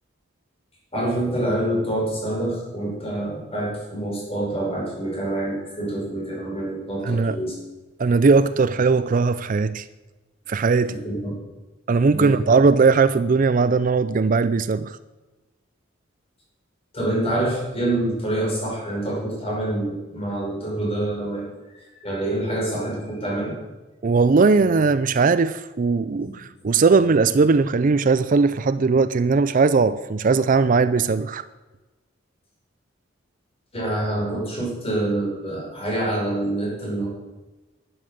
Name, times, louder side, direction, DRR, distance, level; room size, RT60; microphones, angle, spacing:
voice 1, 0.9-7.5 10.9-11.4 12.1-12.3 16.9-21.4 22.0-23.6 26.1-26.3 33.7-37.1, right 1 dB, 30° left, 5.4 m, -26 dB
voice 2, 7.0-7.4 8.0-9.8 10.5-10.9 11.9-15.0 24.0-31.4, right 4 dB, 40° right, 0.4 m, -19 dB
11.5 x 11.0 x 6.6 m
head